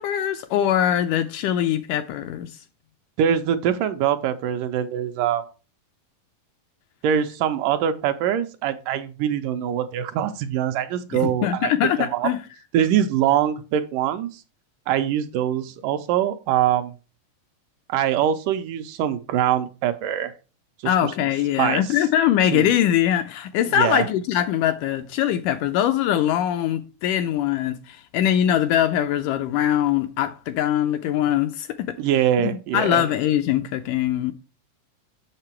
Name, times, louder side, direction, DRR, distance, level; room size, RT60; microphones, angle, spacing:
voice 1, 0.0-2.6 11.1-12.4 20.9-32.0 32.4-34.3, left 11 dB, 80° left, 1.9 m, -22 dB
voice 2, 3.2-5.5 7.0-11.7 12.0-12.3 12.7-14.4 14.9-16.9 17.9-20.3 21.6-21.8 22.5-22.7 23.8-24.1 32.0-33.0, right 10 dB, 80° right, 2.1 m, -23 dB
6.8 x 6.5 x 4.3 m
omnidirectional pair, 4.0 m